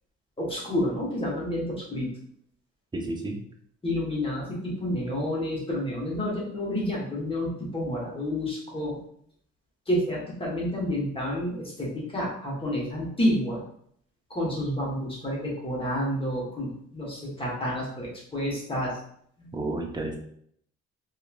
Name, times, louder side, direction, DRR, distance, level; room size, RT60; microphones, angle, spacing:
voice 1, 0.4-2.1 3.8-9.0 9.9-13.6 14.3-19.0 19.4-19.5, left 1 dB, 20° left, -4 dB, 1.2 m, -29 dB
voice 2, 2.9-3.4 19.5-20.2, right 2 dB, 15° right, 2 dB, 0.5 m, -31 dB
2.9 x 2.4 x 2.4 m, 0.66 s
cardioid pair, 90°, 30 cm